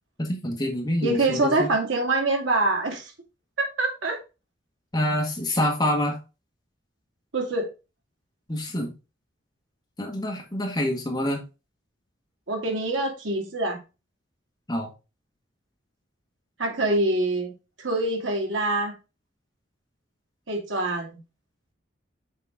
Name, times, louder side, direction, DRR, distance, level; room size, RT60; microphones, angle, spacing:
voice 1, 0.2-1.7 4.9-6.2 8.5-8.9 10.0-11.4 14.7-14.9, left 1 dB, 20° left, 1.6 m, -26 dB
voice 2, 1.0-3.1 3.6-4.2 7.3-7.7 12.5-13.8 16.6-17.5 17.8-18.9 20.5-21.2, right 2 dB, 90° right, 2.0 m, -25 dB
6.8 x 4.4 x 3.6 m
head